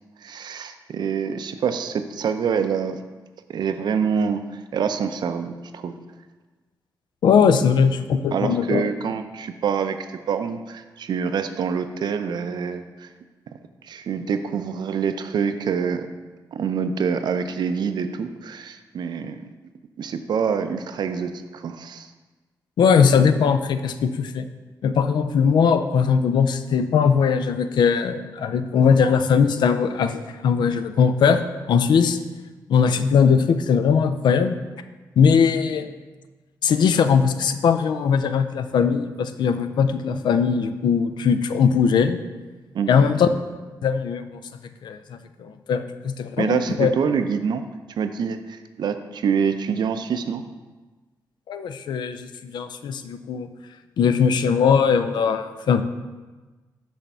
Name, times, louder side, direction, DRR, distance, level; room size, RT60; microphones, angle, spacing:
voice 1, 0.2-3.0 3.5-6.0 8.3-10.0 10.3-13.1 13.8-16.1 16.5-19.4 20.0-22.1 42.7-43.0 46.4-47.6 48.0-50.4, right 6 dB, 70° right, 9 dB, 0.5 m, -26 dB
voice 2, 7.2-8.9 22.8-24.5 24.8-32.2 32.7-34.6 35.2-35.9 36.6-42.2 42.9-43.3 43.8-44.4 44.8-46.9 51.5-53.5 54.0-55.8, left 6 dB, 75° left, 10 dB, 0.4 m, -20 dB
6.2 x 3.4 x 5.5 m, 1.3 s
cardioid pair, 85°, 8 cm